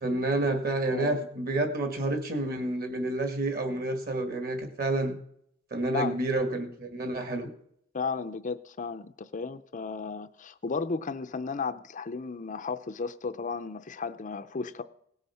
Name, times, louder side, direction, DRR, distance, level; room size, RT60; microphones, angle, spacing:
voice 1, 0.0-5.2 5.7-7.5, right 2 dB, 45° right, 7 dB, 1.9 m, -29 dB
voice 2, 0.9-1.3 5.9-6.2 7.9-14.8, left 4 dB, 35° left, 10 dB, 0.5 m, -34 dB
18.0 x 8.2 x 5.7 m, 0.71 s
head